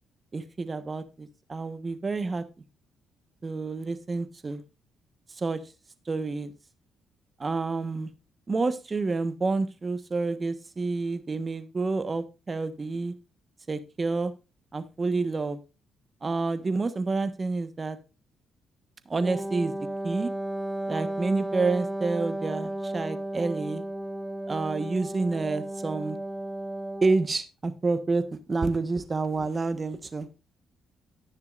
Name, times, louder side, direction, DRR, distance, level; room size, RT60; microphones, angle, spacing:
voice 1, 0.3-2.4 3.4-4.6 5.3-5.6 6.1-6.5 7.4-8.1 8.5-13.1 13.7-14.3 14.7-15.6 16.2-18.0 19.1-19.7 20.0-20.3 20.9-23.8 24.5-26.2 27.0-30.3, right 3 dB, 30° right, 11 dB, 1.3 m, -29 dB
Wind instrument woodwind instrument, 19.2-27.3, right 1 dB, ahead, 0.8 m, -34 dB
18.0 x 6.7 x 2.6 m, 0.30 s
cardioid pair, 90°, 0 cm